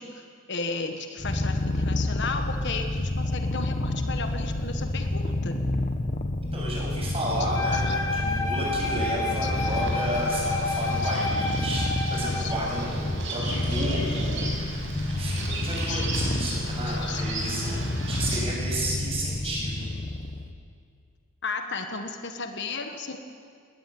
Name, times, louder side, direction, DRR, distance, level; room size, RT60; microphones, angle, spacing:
voice 1, 0.0-5.6 7.7-8.0 9.4-9.7 11.0-11.1 12.4-12.5 15.9-16.0 16.9-17.2 18.2-18.3 18.8-19.0 19.4-19.6 21.4-23.2, left 4 dB, 55° left, 6 dB, 1.5 m, -34 dB
Purr, 1.2-20.5, left 1 dB, 35° left, 1.3 m, -29 dB
voice 2, 6.5-20.2, right 1 dB, 30° right, -3 dB, 7.6 m, -32 dB
Wind instrument woodwind instrument, 7.5-12.6, left 3 dB, 15° left, 2.0 m, -30 dB
Bird vocalization bird call bird song, 9.5-18.4, right 3 dB, 60° right, 5.9 m, -38 dB
19.5 x 19.5 x 9.3 m, 2.2 s
head